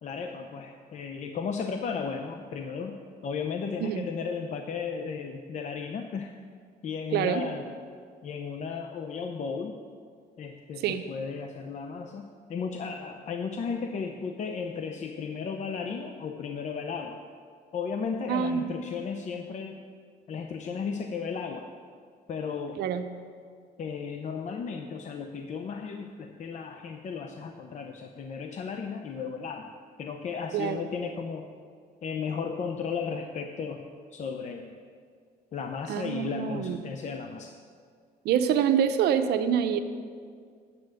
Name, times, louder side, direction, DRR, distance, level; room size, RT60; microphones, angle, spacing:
voice 1, 0.0-3.0 3.2-6.3 6.8-7.6 8.2-9.7 10.4-17.2 17.7-19.8 20.3-21.7 22.3-22.8 23.8-29.7 30.0-31.5 32.0-33.8 34.1-34.8 35.5-37.5, left 5 dB, 45° left, 4 dB, 0.7 m, -34 dB
voice 2, 7.1-7.5 10.8-11.0 18.3-18.7 22.8-23.1 30.5-30.8 35.9-36.8 38.2-39.8, right 8 dB, 75° right, 9 dB, 0.7 m, -26 dB
9.6 x 7.7 x 6.4 m, 2.1 s
cardioid pair, 110°, 17 cm